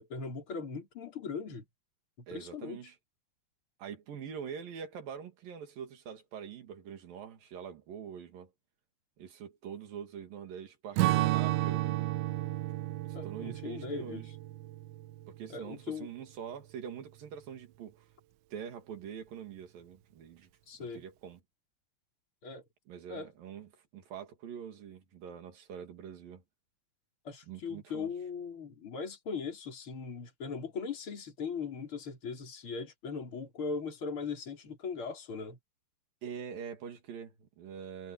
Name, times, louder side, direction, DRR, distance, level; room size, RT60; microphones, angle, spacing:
voice 1, 0.0-1.7 2.3-2.8 13.1-14.2 15.5-16.1 20.7-21.0 22.4-22.6 23.1-23.3 27.2-35.6, left 5 dB, 30° left, 5.7 m, -39 dB
voice 2, 2.3-3.0 3.8-8.5 9.2-12.1 13.2-14.3 15.3-18.1 18.5-20.5 20.8-21.4 22.9-26.4 27.5-28.1 36.2-38.1, right 8 dB, 55° right, 4.0 m, -44 dB
Strum, 11.0-15.6, right 17 dB, 85° right, 3.2 m, -32 dB
omnidirectional pair, 5.2 m